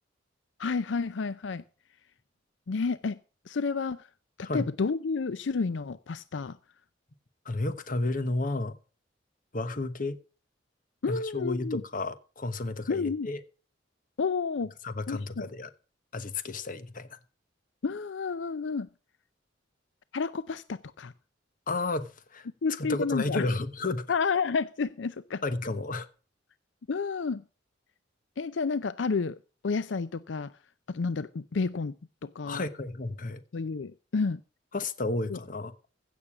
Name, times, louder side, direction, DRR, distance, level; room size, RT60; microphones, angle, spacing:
voice 1, 0.6-1.6 2.7-3.2 3.5-4.1 4.4-6.6 11.0-11.8 12.9-13.3 14.2-14.7 15.1-15.5 17.8-18.9 20.1-21.1 22.6-23.5 24.1-25.4 26.9-27.4 28.4-29.4 29.6-30.5 30.9-31.9 32.2-32.6 33.5-34.4 35.3-35.4, left 4 dB, 80° left, 0.5 m, -30 dB
voice 2, 7.4-8.8 9.5-10.2 11.1-13.4 14.8-15.7 16.1-17.2 21.7-22.5 22.8-24.1 25.4-26.1 32.4-33.4 34.7-35.7, left 2 dB, 45° left, 1.2 m, -32 dB
15.5 x 7.0 x 6.0 m
head